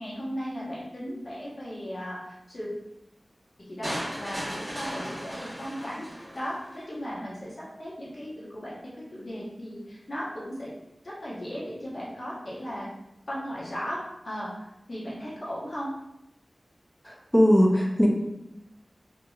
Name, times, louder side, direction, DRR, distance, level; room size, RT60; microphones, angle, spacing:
voice 1, 0.0-2.7 3.7-6.1 6.3-8.8 9.1-10.7 11.0-12.9 13.3-15.9, equal, 55° left, -7 dB, 1.0 m, -36 dB
sound 1, 3.8-6.8, equal, 10° right, 1.4 m, -36 dB
voice 2, 17.0-18.1, equal, 10° left, -1 dB, 0.6 m, -20 dB
2.8 x 2.7 x 2.4 m, 0.86 s
wide cardioid pair, 60°, 0 cm